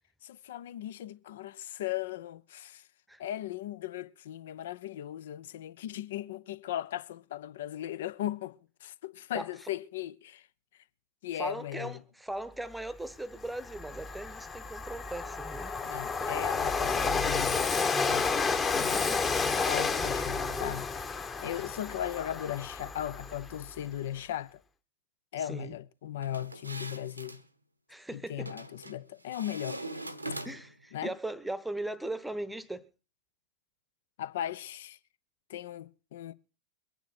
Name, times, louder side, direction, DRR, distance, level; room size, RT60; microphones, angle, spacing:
voice 1, 0.2-2.8 3.2-10.5 11.2-12.0 15.8-17.7 18.0-18.3 18.7-24.6 25.3-27.4 28.1-29.8 30.9-31.1 34.2-35.0 35.5-36.3, left 12 dB, 55° left, 0.7 m, -38 dB
voice 2, 11.3-15.7 16.2-16.3 18.8-19.2 25.4-25.8 27.9-28.5 30.4-32.9, right 1 dB, 5° right, 1.0 m, -39 dB
Train, 12.9-13.0 13.4-23.8, left 4 dB, 20° left, 1.2 m, -31 dB
sound 1, 26.2-27.4 28.5-29.0 29.3-30.8, right 1 dB, 85° right, 1.1 m, -41 dB
23.0 x 9.3 x 4.3 m
figure-of-eight pair, 90°, 0 cm